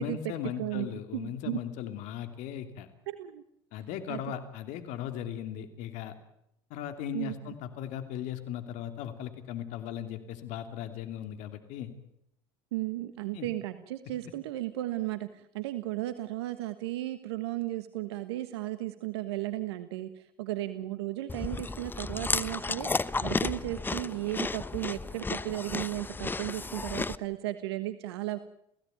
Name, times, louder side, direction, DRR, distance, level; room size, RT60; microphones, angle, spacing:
voice 1, 0.0-2.9 3.7-6.1 6.7-11.9 13.3-13.5, left 10 dB, 65° left, 8 dB, 2.9 m, -37 dB
voice 2, 0.6-1.6 3.1-3.4 4.1-4.2 7.1-7.5 12.7-28.4, right 15 dB, 80° right, 11 dB, 1.3 m, -35 dB
Chewing mastication, 21.3-27.2, left 3 dB, 15° left, 1.0 m, -33 dB
30.0 x 16.5 x 9.4 m, 0.78 s
hypercardioid pair, 85°, 13 cm